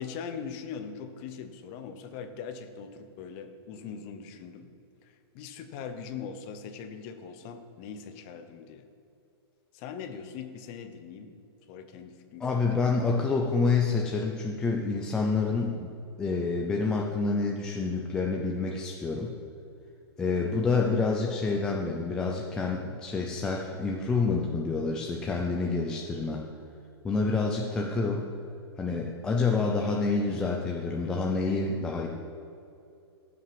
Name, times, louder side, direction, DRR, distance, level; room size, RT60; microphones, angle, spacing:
voice 1, 0.0-4.7 5.0-8.9 9.7-11.3 11.7-12.7 20.4-20.7, left 6 dB, 25° left, 8 dB, 0.7 m, -41 dB
voice 2, 12.4-15.9 16.2-19.3 20.2-26.4 27.0-28.3 28.8-32.1, left 4 dB, 5° left, -1 dB, 0.3 m, -28 dB
14.0 x 5.9 x 5.8 m, 2.7 s
hypercardioid pair, 175°, 14 cm